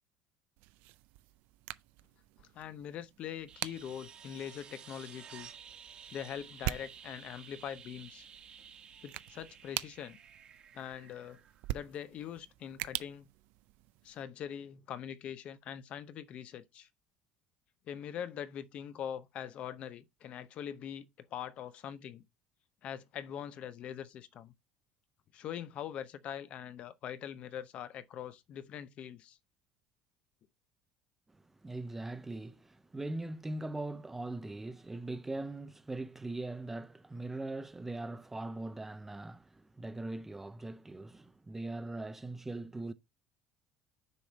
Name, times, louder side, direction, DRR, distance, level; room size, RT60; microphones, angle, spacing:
sound 1, 0.6-14.2, right 17 dB, 70° right, 0.4 m, -45 dB
voice 1, 2.4-5.5 6.1-8.3 9.0-10.2 10.7-11.4 11.7-13.3 14.0-16.9 17.9-22.2 22.8-24.5 25.3-29.4, left 9 dB, 40° left, 0.7 m, -43 dB
sound 2, 3.5-12.2 14.5-14.6, right 7 dB, 30° right, 1.2 m, -53 dB
voice 2, 31.3-42.9, right 2 dB, 10° right, 0.4 m, -41 dB
6.9 x 5.0 x 4.0 m
cardioid pair, 170°, 3 cm